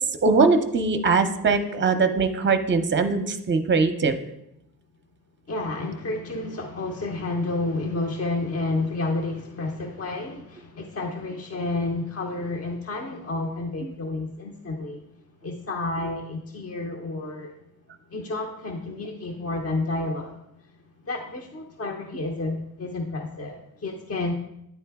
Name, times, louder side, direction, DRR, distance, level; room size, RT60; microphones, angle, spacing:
voice 1, 0.2-4.2 13.8-13.9, right 4 dB, 30° right, 8 dB, 0.6 m, -21 dB
voice 2, 5.5-15.0 15.4-17.5 18.1-20.4 21.0-24.3, left 2 dB, 40° left, 1 dB, 0.7 m, -30 dB
9.9 x 3.8 x 3.5 m, 0.80 s
cardioid pair, 100°, 37 cm